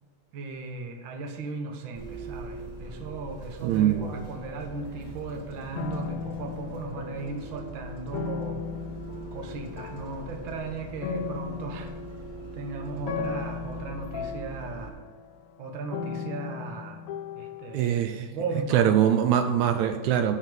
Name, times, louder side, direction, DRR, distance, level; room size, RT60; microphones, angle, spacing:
voice 1, 0.3-8.6 9.3-11.9 12.5-15.0 15.6-17.0 17.3-18.0 18.3-18.9, right 3 dB, 55° right, 3 dB, 1.6 m, -36 dB
Bus, 1.9-14.9, right 2 dB, 20° right, 1.4 m, -42 dB
voice 2, 3.6-4.1 17.7-18.3 18.7-20.4, right 10 dB, 80° right, 7 dB, 1.9 m, -23 dB
sound 1, 4.0-5.4 5.8-7.5 8.1-17.9, left 7 dB, 75° left, 1.8 m, -38 dB
12.0 x 4.2 x 5.3 m, 1.5 s
omnidirectional pair, 3.4 m